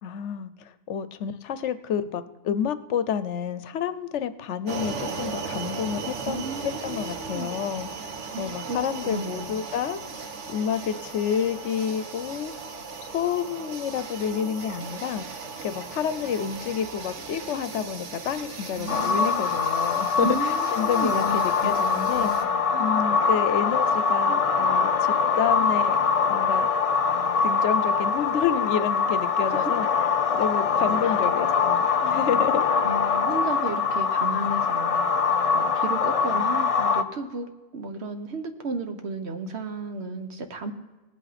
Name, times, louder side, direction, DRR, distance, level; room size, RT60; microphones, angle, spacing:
voice 1, 0.0-7.9 8.4-10.0 10.5-12.5 13.0-15.2 15.6-22.5 22.8-26.0 26.3-26.7 27.4-32.6 33.0-33.1, left 8 dB, 80° left, 13 dB, 1.0 m, -29 dB
sound 1, 4.7-22.4, right 5 dB, 90° right, 1.4 m, -37 dB
voice 2, 6.2-7.5 8.3-8.8 9.0-9.6 18.8-19.5 20.2-23.1 24.3-24.4 29.4-29.7 31.0-31.2 32.8-35.1 35.5-40.7, right 2 dB, 65° right, 6 dB, 1.3 m, -34 dB
sound 2, 18.9-37.0, left 5 dB, 50° left, 0.4 m, -23 dB
18.5 x 8.4 x 4.1 m, 1.2 s
omnidirectional pair, 1.2 m